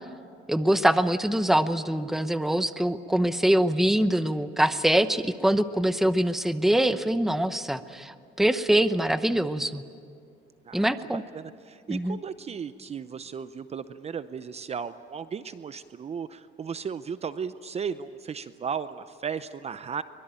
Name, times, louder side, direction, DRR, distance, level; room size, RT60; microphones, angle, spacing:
voice 1, 0.5-9.8 10.7-11.2 11.9-12.2, right 1 dB, ahead, 11 dB, 0.8 m, -24 dB
voice 2, 10.7-20.0, right 6 dB, 35° right, 13 dB, 0.6 m, -35 dB
23.5 x 22.0 x 9.0 m, 2.3 s
cardioid pair, 130°, 20 cm